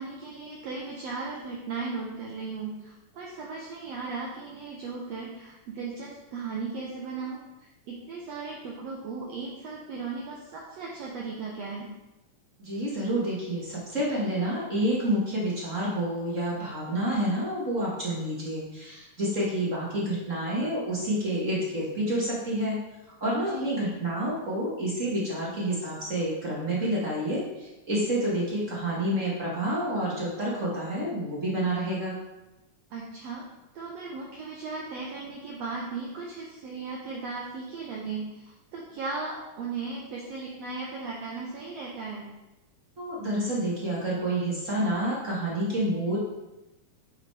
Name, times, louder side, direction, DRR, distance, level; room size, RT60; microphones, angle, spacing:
voice 1, 0.0-11.9 23.4-23.7 32.9-33.4 33.7-42.3, right 4 dB, 75° right, -2 dB, 1.5 m, -36 dB
voice 2, 12.6-22.8 23.2-32.2 43.0-46.2, right 1 dB, 40° right, -6 dB, 1.2 m, -29 dB
8.7 x 6.2 x 3.3 m, 0.99 s
omnidirectional pair, 3.9 m